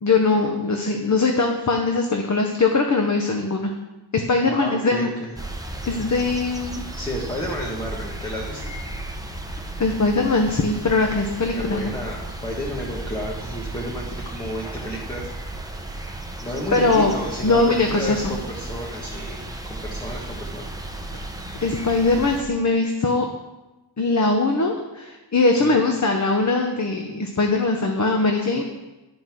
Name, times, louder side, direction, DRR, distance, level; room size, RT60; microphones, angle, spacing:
voice 1, 0.0-3.7 4.1-5.1 5.9-6.9 9.8-11.9 16.7-17.1 17.4-18.4 21.6-23.3 24.0-28.6, left 3 dB, 35° left, 3 dB, 0.8 m, -21 dB
voice 2, 4.5-5.3 7.0-8.7 11.5-15.3 16.4-19.4 19.7-20.7 25.6-25.8, equal, 10° left, -4 dB, 1.4 m, -31 dB
sound 1, 5.4-22.4, right 1 dB, 10° right, 0.8 m, -34 dB
11.0 x 5.3 x 6.1 m, 1.1 s
wide cardioid pair, 145°, 47 cm